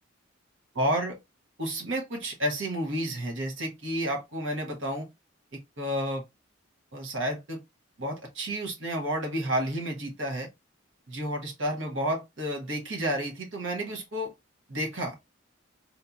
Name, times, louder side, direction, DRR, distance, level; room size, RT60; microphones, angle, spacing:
voice 1, 0.7-1.1 1.6-5.1 5.8-6.2 6.9-7.6 8.0-10.5 11.1-14.3 14.7-15.2, right 1 dB, 75° right, 1.3 m, -31 dB
4.4 x 2.8 x 2.3 m
head